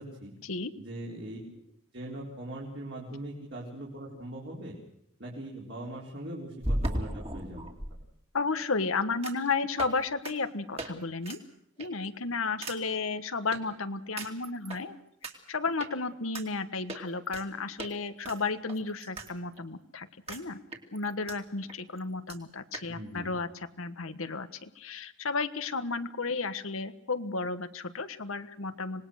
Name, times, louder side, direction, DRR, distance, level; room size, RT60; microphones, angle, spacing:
voice 1, 0.0-0.3 0.8-1.6 1.9-4.8 5.2-7.7 22.9-23.4, right 1 dB, 55° right, -3 dB, 4.2 m, -41 dB
sound 1, 4.1-4.2 6.6-7.9 9.2-9.5 9.8-10.0 10.2-10.3 10.8-10.9 11.2-11.4 11.8-12.1 12.6-12.8 13.5-13.6 14.2-14.8 15.2-15.3 15.8-15.9 16.3-16.5 16.9-17.5 17.8-17.9 18.2-19.3 19.6-19.7 20.3-20.4 20.7-21.4 21.7-21.8 22.0-22.1 22.3-22.4 22.7-22.9, right 1 dB, 30° right, 2.8 m, -35 dB
voice 2, 8.3-11.4 11.8-14.9 15.5-20.6 20.9-29.0, left 4 dB, 80° left, 10 dB, 1.4 m, -33 dB
26.0 x 19.5 x 6.5 m, 0.75 s
head